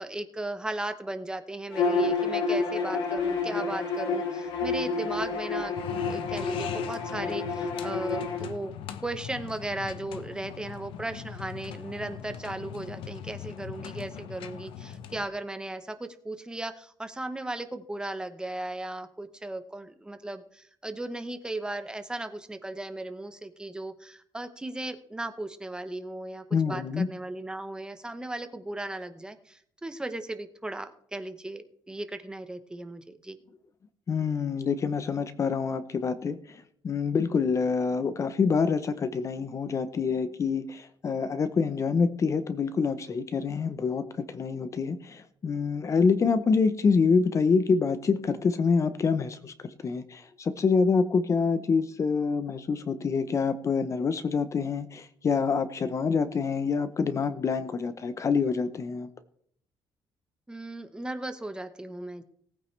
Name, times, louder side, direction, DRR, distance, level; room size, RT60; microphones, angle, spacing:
voice 1, 0.0-5.8 6.1-8.7 9.0-33.4 60.5-62.2, right 2 dB, 10° right, 9 dB, 0.9 m, -36 dB
Bowed string instrument, 1.7-8.4, left 4 dB, 70° left, 3.2 m, -29 dB
sound 1, 5.8-15.3, left 9 dB, 90° left, 0.9 m, -41 dB
voice 2, 26.5-27.1 34.1-59.1, left 5 dB, 35° left, 12 dB, 0.7 m, -26 dB
19.0 x 9.0 x 3.3 m, 0.64 s
cardioid pair, 140°, 9 cm